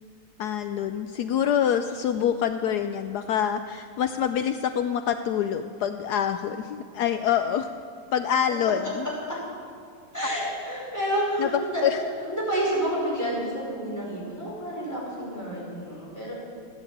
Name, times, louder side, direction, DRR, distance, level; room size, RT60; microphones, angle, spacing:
voice 1, 0.4-7.7 8.1-9.0 10.2-10.3 11.4-11.5 11.8-12.0, left 9 dB, 85° left, 9 dB, 0.8 m, -26 dB
voice 2, 10.1-16.3, right 1 dB, 10° left, -6 dB, 5.3 m, -29 dB
15.5 x 10.5 x 8.7 m, 2.3 s
omnidirectional pair, 2.3 m